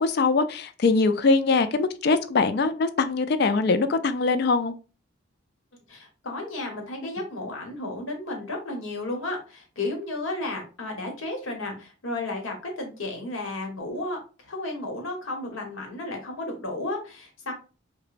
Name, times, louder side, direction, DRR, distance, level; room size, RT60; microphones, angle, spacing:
voice 1, 0.0-4.7, left 3 dB, 50° left, 0.3 m, -22 dB
voice 2, 5.9-17.5, left 2 dB, 80° left, 1.1 m, -33 dB
5.0 x 2.1 x 2.5 m
head